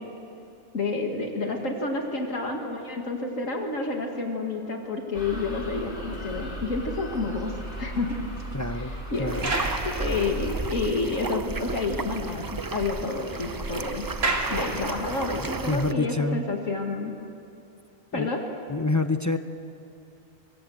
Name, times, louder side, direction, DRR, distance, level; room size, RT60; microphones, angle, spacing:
voice 1, 0.7-7.5 7.8-8.2 9.1-9.5 9.8-14.0 14.5-17.1 18.1-18.4, left 3 dB, 70° left, 2 dB, 2.4 m, -29 dB
sound 1, 5.1-10.5, equal, 35° left, 3.5 m, -37 dB
sound 2, 7.3-11.0 11.3-11.4 11.8-11.9 12.1-15.4 16.1-16.3, right 2 dB, 65° right, 2.8 m, -35 dB
voice 2, 8.5-8.9 9.2-9.5 15.4-16.4 18.1-18.3 18.7-19.4, left 3 dB, 15° left, 9 dB, 0.7 m, -27 dB
sound 3, 9.3-15.9, right 3 dB, 30° right, 0.4 m, -34 dB
25.0 x 23.0 x 7.9 m, 2.7 s
omnidirectional pair, 1.4 m